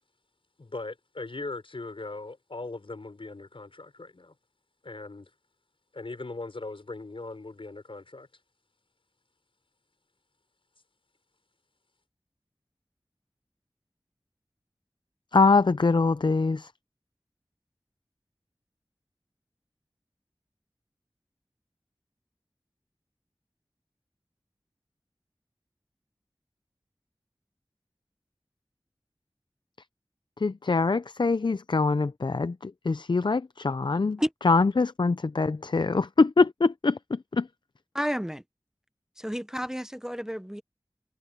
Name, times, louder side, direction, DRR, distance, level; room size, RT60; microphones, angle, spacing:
voice 1, 0.6-4.3 4.8-5.3 5.9-8.3, left 3 dB, 75° left, 5.7 m, -39 dB
voice 2, 15.3-16.7 30.4-34.2 34.4-37.0 37.3-37.4, left 4 dB, 55° left, 0.5 m, -23 dB
voice 3, 37.9-38.4 39.2-40.6, equal, 5° right, 0.8 m, -31 dB
wide cardioid pair, 40°, 9 cm